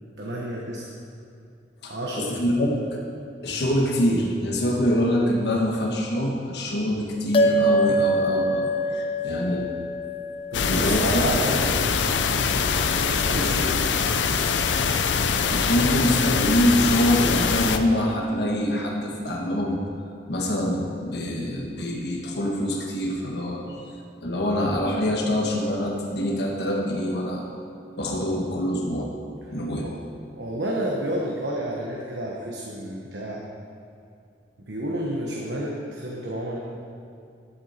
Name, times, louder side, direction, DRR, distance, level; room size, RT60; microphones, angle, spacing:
voice 1, 0.2-0.9 1.9-2.4 10.5-12.3 13.1-13.8 29.5-29.6 29.8-29.9 30.3-33.5 34.6-36.6, right 1 dB, 70° right, -3 dB, 1.2 m, -30 dB
voice 2, 2.3-2.8 3.4-9.7 10.7-11.0 15.5-19.8 20.3-23.8 24.2-27.4 28.0-29.1 29.5-29.9, left 1 dB, 65° left, -1 dB, 1.4 m, -25 dB
sound 1, 7.3-12.0, equal, 30° left, 0.6 m, -25 dB
sound 2, 10.5-17.8, left 5 dB, 85° left, 0.6 m, -23 dB
11.5 x 8.2 x 4.4 m, 2.4 s
head